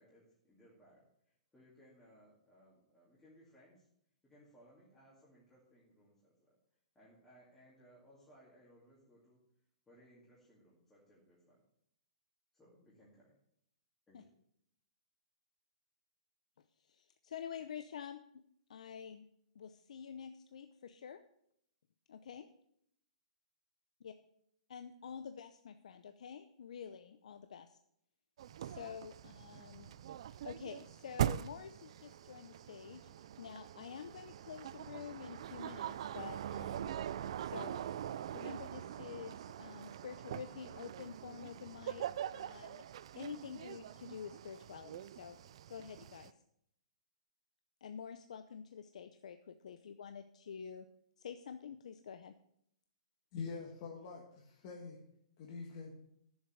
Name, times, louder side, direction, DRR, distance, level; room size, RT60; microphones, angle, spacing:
voice 1, 0.0-3.9 4.2-6.6 6.9-9.4 9.9-11.6 12.5-13.3 14.1-14.3, equal, 5° left, -8 dB, 2.4 m, -64 dB
voice 2, 16.9-18.4 18.7-19.2 19.5-21.2 22.1-22.5 24.0-24.1 24.7-27.8 28.6-29.9 30.4-33.1 33.4-36.9 37.4-37.8 38.3-42.8 43.2-45.4 45.7-46.3 47.8-50.9 51.2-52.3, left 7 dB, 70° left, 9 dB, 0.7 m, -48 dB
sound 1, 28.4-46.3, right 10 dB, 50° right, 0.4 m, -43 dB
voice 3, 53.3-55.0 55.4-55.9, left 5 dB, 30° left, -1 dB, 1.6 m, -45 dB
10.5 x 7.3 x 6.4 m, 0.72 s
hypercardioid pair, 170°, 4 cm